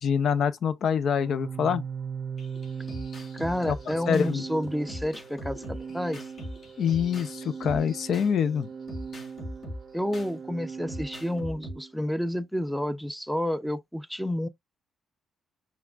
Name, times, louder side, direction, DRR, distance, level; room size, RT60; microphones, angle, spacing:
voice 1, 0.0-1.9 3.7-3.8 4.1-4.4 6.8-8.7, left 7 dB, 65° left, 0.7 m, -25 dB
Organ, 1.2-11.9, right 6 dB, 50° right, 0.5 m, -39 dB
sound 1, 2.4-8.4 8.9-10.3 10.9-11.7, equal, 50° left, 2.1 m, -41 dB
voice 2, 3.3-6.3 9.9-14.5, equal, ahead, 0.7 m, -30 dB
5.8 x 3.5 x 2.5 m
cardioid pair, 90°, 0 cm